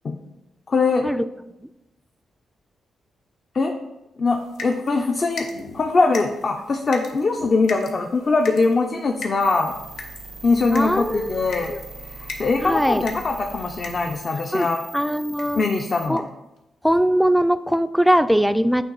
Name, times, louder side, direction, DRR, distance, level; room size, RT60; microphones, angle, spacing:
voice 1, 0.7-1.1 3.5-3.7 4.2-5.5 5.7-9.8 10.4-11.7 12.1-14.8 15.5-16.2, left 3 dB, 50° left, 2 dB, 0.5 m, -22 dB
sound 1, 4.3-14.9 15.3-15.7 16.2-16.3 16.6-16.7, left 3 dB, 85° left, 0.7 m, -40 dB
sound 2, 9.4-16.0, right 2 dB, 85° right, 0.9 m, -40 dB
voice 2, 10.7-11.3 11.7-11.8 12.6-13.0 14.5-14.7 14.9-15.6 16.1-16.3 16.8-18.8, equal, ahead, 12 dB, 0.3 m, -20 dB
8.5 x 3.0 x 3.9 m, 0.96 s
cardioid pair, 60°, 0 cm